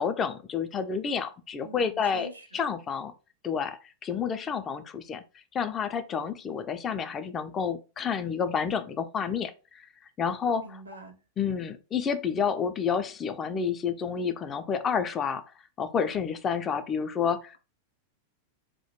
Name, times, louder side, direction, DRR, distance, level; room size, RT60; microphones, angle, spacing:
voice 1, 0.0-3.1 3.4-5.2 5.5-9.9 10.2-10.8 11.4-15.4 15.8-17.6, left 6 dB, 25° left, 0.3 m, -29 dB
voice 2, 1.6-2.5 10.5-11.2, right 1 dB, 80° right, 0.5 m, -43 dB
2.2 x 2.1 x 2.9 m
figure-of-eight pair, 90°, 0 cm